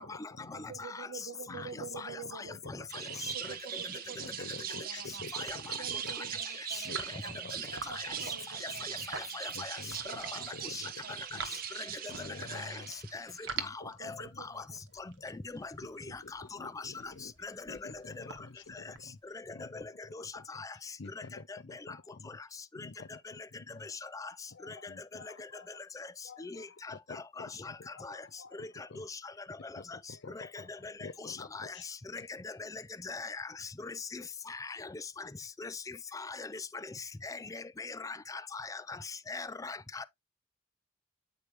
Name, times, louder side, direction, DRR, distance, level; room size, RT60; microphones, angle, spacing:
voice 1, 0.0-0.8 1.5-1.9 2.2-3.6 4.1-6.4 6.8-7.8 8.2-9.1 9.5-11.8 12.1-13.0 13.5-14.7 15.2-15.3 15.8-17.3 17.7-19.2 19.5-20.6 21.0-22.4 22.7-24.0 24.5-29.1 29.7-31.9 32.2-32.3, left 3 dB, 65° left, 0.6 m, -49 dB
voice 2, 0.5-5.2 5.8-6.9 7.2-7.3 7.7-9.4 10.0-10.7 11.0-11.1 13.8-14.8, right 6 dB, 85° right, 0.7 m, -48 dB
sound 1, 2.9-13.5, right 8 dB, 50° right, 0.8 m, -40 dB
sound 2, 5.0-6.1 6.8-10.5 10.9-12.9 13.3-19.4, right 5 dB, 70° right, 1.1 m, -45 dB
voice 3, 9.3-9.8 10.7-10.8 12.5-12.8 13.1-13.3 13.6-13.7 14.0-14.5 15.2-15.3 15.6-15.9 16.3-16.9 17.4-17.8 20.1-20.2 20.5-20.7 24.1-24.3 26.4-26.7 27.1-27.7 28.0-28.2 28.6-28.7 29.0-29.1 30.4-30.5 30.8-30.9 31.3-31.7 32.1-33.4 33.8-34.2 34.5-34.9 35.6-35.7 36.1-36.5 37.2-38.8 39.3-40.0, left 4 dB, 15° left, 0.4 m, -41 dB
8.4 x 4.9 x 3.0 m
head